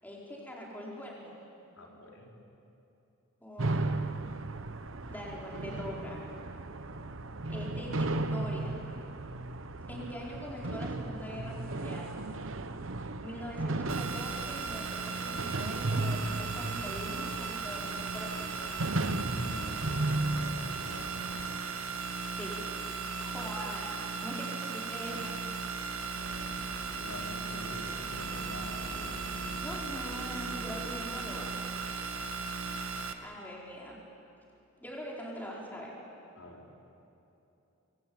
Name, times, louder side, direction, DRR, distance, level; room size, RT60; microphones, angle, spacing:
voice 1, 0.0-1.4 3.4-4.1 5.1-6.2 7.5-8.8 9.9-12.1 13.2-18.7 22.3-22.6 23.2-25.4 29.6-31.5 33.2-34.0 34.8-35.9, equal, 10° left, -3 dB, 4.9 m, -43 dB
voice 2, 1.8-2.3 10.0-10.1 19.3-21.3 26.0-26.5 27.0-29.1 36.4-36.6, left 1 dB, 75° left, -1 dB, 4.4 m, -46 dB
sound 1, 3.6-21.6, right 2 dB, 65° right, 1.0 m, -35 dB
sound 2, 13.9-33.1, right 4 dB, 85° right, 1.6 m, -37 dB
sound 3, 26.2-31.5, left 1 dB, 40° left, 6.2 m, -47 dB
26.0 x 24.0 x 9.0 m, 2.9 s
head